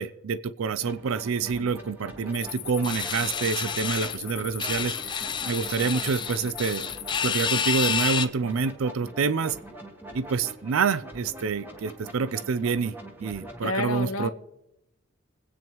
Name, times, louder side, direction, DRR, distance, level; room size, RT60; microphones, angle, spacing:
voice 1, 0.0-6.9 7.2-9.6 10.1-14.3, right 5 dB, 80° right, 15 dB, 0.4 m, -27 dB
sound 1, 0.8-13.6, right 1 dB, 10° right, 1.7 m, -44 dB
sound 2, 2.3-8.1, left 13 dB, 55° left, 0.9 m, -39 dB
sound 3, 2.8-4.2 4.6-8.3, left 7 dB, 20° left, 0.4 m, -29 dB
voice 2, 13.6-14.3, left 2 dB, 80° left, 5 dB, 1.2 m, -29 dB
23.0 x 8.9 x 3.0 m, 0.86 s
head